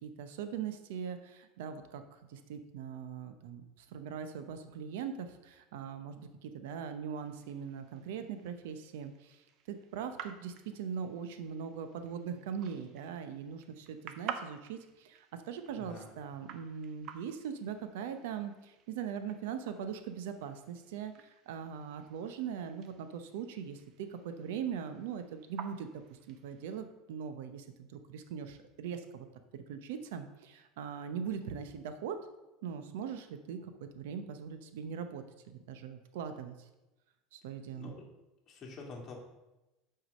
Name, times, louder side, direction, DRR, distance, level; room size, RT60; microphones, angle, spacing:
voice 1, 0.0-29.3 29.5-32.2 32.6-36.7 37.3-38.0, right 7 dB, 85° right, 9 dB, 0.7 m, -41 dB
sound 1, 7.2-26.8, right 8 dB, 45° right, 0.6 m, -51 dB
voice 2, 15.8-16.1 37.8-38.1 38.5-39.2, left 3 dB, 30° left, -1 dB, 1.9 m, -46 dB
6.1 x 4.7 x 6.4 m, 0.99 s
supercardioid pair, 145°, 0 cm